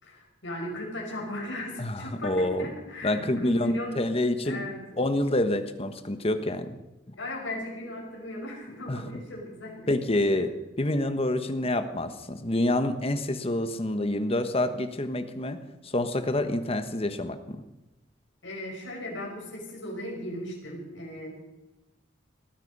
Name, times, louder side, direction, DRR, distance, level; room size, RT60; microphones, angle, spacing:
voice 1, 0.0-4.0 4.4-4.8 7.1-9.9 10.3-10.4 18.4-21.3, left 1 dB, 80° left, -1 dB, 5.9 m, -37 dB
voice 2, 1.8-2.7 3.0-4.6 5.0-6.7 8.9-9.0 9.9-15.6 15.8-17.6, left 1 dB, 30° left, 9 dB, 1.3 m, -27 dB
19.5 x 13.5 x 5.5 m, 0.99 s
head